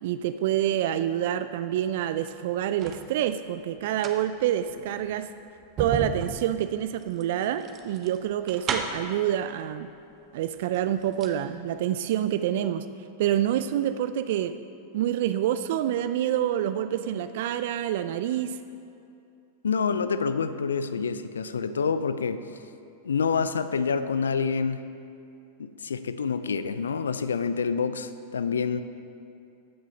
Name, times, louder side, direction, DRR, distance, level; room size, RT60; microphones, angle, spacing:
voice 1, 0.0-5.3 5.8-9.9 10.3-12.8 13.2-14.5 14.9-18.6, right 11 dB, 60° right, 11 dB, 0.3 m, -27 dB
sound 1, 2.1-3.1 3.8-9.2 10.1-10.2 10.6-11.4 11.7-11.8, right 5 dB, 35° right, 0.9 m, -35 dB
voice 2, 19.6-22.4 23.0-24.8 25.6-28.8, left 5 dB, 80° left, 12 dB, 0.4 m, -27 dB
15.0 x 6.3 x 4.0 m, 2.6 s
hypercardioid pair, 95°, 0 cm